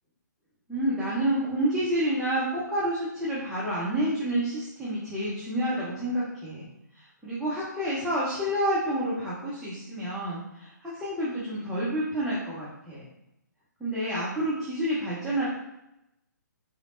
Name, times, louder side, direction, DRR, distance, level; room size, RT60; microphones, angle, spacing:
voice 1, 0.7-6.7 7.0-13.0 13.8-15.4, right 1 dB, ahead, -11 dB, 0.7 m, -29 dB
3.9 x 3.2 x 2.5 m, 0.86 s
figure-of-eight pair, 130°, 10 cm